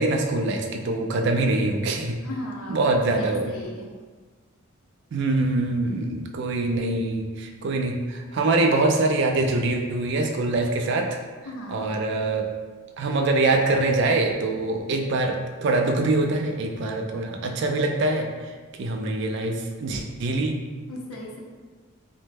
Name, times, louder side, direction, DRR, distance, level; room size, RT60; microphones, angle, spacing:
voice 1, 0.0-2.2 2.7-3.6 5.1-11.2 11.7-12.5 13.0-18.3 18.8-20.6, right 2 dB, 55° right, 3 dB, 0.3 m, -24 dB
voice 2, 2.2-3.9 11.4-11.9 20.9-21.4, left 1 dB, 80° left, -1 dB, 0.6 m, -37 dB
3.0 x 2.1 x 3.3 m, 1.4 s
head